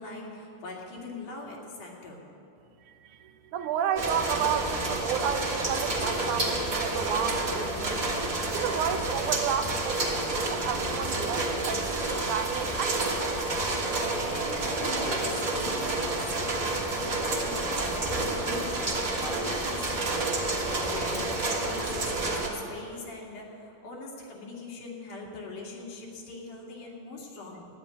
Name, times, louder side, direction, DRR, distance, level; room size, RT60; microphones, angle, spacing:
voice 1, 0.0-2.3 14.2-27.7, left 3 dB, 80° left, -2 dB, 3.7 m, -41 dB
voice 2, 3.5-8.1 8.5-13.3, right 8 dB, 80° right, 7 dB, 2.1 m, -32 dB
sound 1, 4.0-22.5, right 2 dB, 35° right, 1.5 m, -29 dB
13.0 x 9.6 x 9.3 m, 2.8 s
omnidirectional pair, 3.6 m